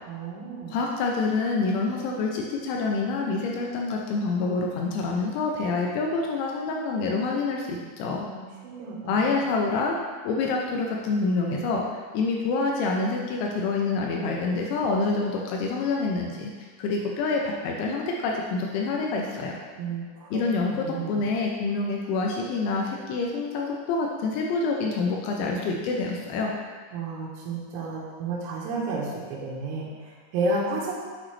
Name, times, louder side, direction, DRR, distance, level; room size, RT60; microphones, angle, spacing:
voice 1, 0.1-0.8 8.1-9.3 19.8-20.4 20.7-21.3 26.9-31.0, right 3 dB, 85° right, -5 dB, 3.7 m, -32 dB
voice 2, 0.7-8.3 9.1-10.0 10.2-11.8 12.1-16.5 16.8-19.5 20.3-26.5, left 3 dB, 85° left, -1 dB, 2.6 m, -27 dB
7.6 x 5.9 x 3.2 m, 1.5 s
omnidirectional pair, 5.8 m